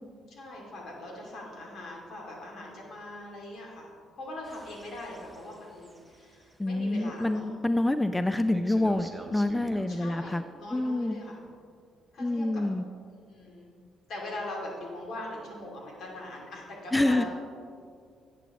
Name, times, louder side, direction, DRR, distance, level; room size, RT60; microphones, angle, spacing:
voice 1, 0.3-3.9 4.2-7.5 9.9-11.4 12.1-12.6 13.2-13.8 14.1-17.3, left 1 dB, 70° left, -1 dB, 2.6 m, -41 dB
sound 1, 4.4-6.5 8.5-9.9, right 1 dB, 10° right, 1.0 m, -47 dB
voice 2, 6.6-10.4 10.7-11.2 12.2-12.8 16.9-17.2, left 1 dB, 10° left, 10 dB, 0.3 m, -27 dB
11.5 x 8.4 x 3.1 m, 2.2 s
cardioid pair, 80°, 0 cm